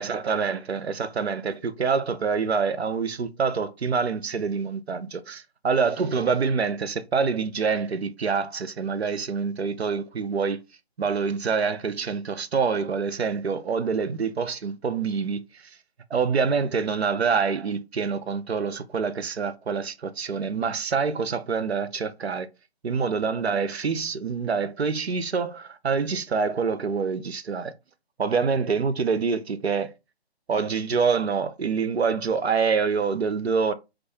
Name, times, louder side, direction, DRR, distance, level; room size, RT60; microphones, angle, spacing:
voice 1, 0.0-10.6 11.0-15.4 16.1-22.5 22.8-27.7 28.2-29.9 30.5-33.7, right 5 dB, 75° right, 0.5 m, -26 dB
2.2 x 2.1 x 2.9 m
figure-of-eight pair, 145°, 32 cm